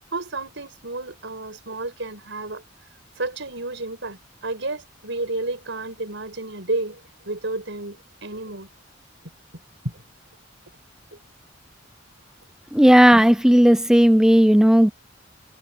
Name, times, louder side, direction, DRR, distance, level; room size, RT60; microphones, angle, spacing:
voice 1, 0.1-2.6 3.2-8.7 9.8-9.9, right 2 dB, 65° right, 7.3 m, -31 dB
voice 2, 12.7-14.9, equal, 5° right, 0.4 m, -14 dB
head